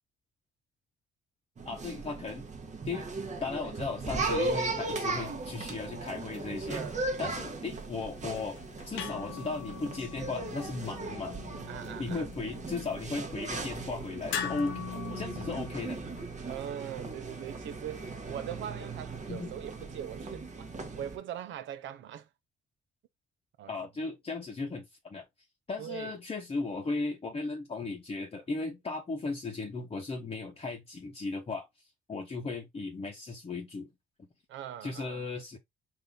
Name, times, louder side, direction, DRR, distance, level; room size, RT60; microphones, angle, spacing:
voice 1, 1.6-2.4 2.9-3.1 3.4-6.8 7.2-8.6 8.9-11.4 12.0-14.8 15.1-16.0 19.3-19.5 23.7-25.3 25.7-31.7 32.1-33.9 34.2-34.3 34.8-35.6, left 3 dB, 30° left, 0.9 m, -36 dB
sound 1, 1.6-21.2, right 3 dB, 35° right, 1.1 m, -37 dB
sound 2, 8.2-16.2, left 9 dB, 75° left, 0.7 m, -42 dB
voice 2, 11.7-12.3 16.4-22.3 23.6-23.8 25.8-26.1 34.5-35.3, right 10 dB, 75° right, 0.6 m, -41 dB
3.9 x 2.6 x 3.5 m
cardioid pair, 90°, 20 cm